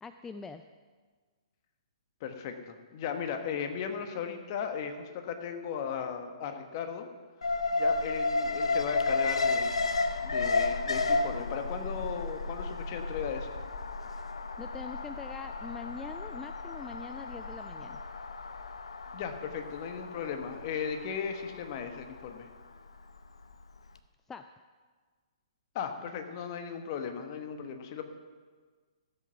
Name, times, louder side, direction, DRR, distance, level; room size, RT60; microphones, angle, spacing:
voice 1, 0.0-0.6 14.6-18.0 24.3-24.4, left 5 dB, 10° left, 9 dB, 0.4 m, -43 dB
voice 2, 2.2-7.1 7.7-9.8 10.2-13.6 19.1-22.5 25.7-28.0, left 7 dB, 40° left, 6 dB, 1.4 m, -36 dB
Alarm, 7.4-23.5 23.8-23.9, left 3 dB, 75° left, 0.8 m, -33 dB
15.5 x 7.8 x 5.9 m, 1.5 s
figure-of-eight pair, 120°, 3 cm